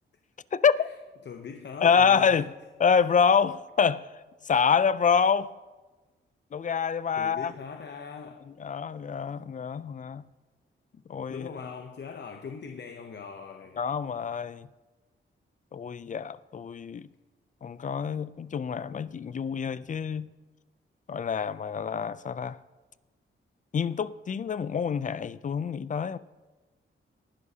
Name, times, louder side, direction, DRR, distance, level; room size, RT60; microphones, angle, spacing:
voice 1, 0.5-0.9 1.8-2.5 2.8-4.0 4.5-5.5 6.5-7.5 8.6-10.2 11.1-11.5 13.8-14.7 15.7-17.1 17.6-20.3 21.1-22.6 23.7-26.2, left 6 dB, 40° left, 0.4 m, -26 dB
voice 2, 1.2-2.4 7.2-8.5 10.9-11.0 11.3-13.8, left 6 dB, 55° left, 0.7 m, -41 dB
19.5 x 11.0 x 2.8 m
wide cardioid pair, 115°, 21 cm